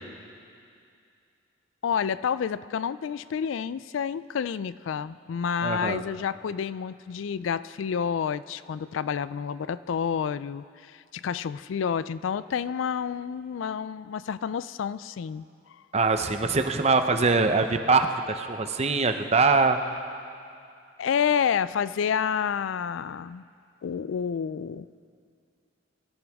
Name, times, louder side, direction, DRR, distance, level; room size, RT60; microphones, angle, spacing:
voice 1, 1.8-15.4 21.0-23.4 23.8-24.9, left 7 dB, 80° left, 16 dB, 0.3 m, -29 dB
voice 2, 5.6-6.0 15.9-19.8, right 4 dB, 35° right, 7 dB, 0.7 m, -23 dB
23.0 x 13.0 x 3.6 m, 2.4 s
head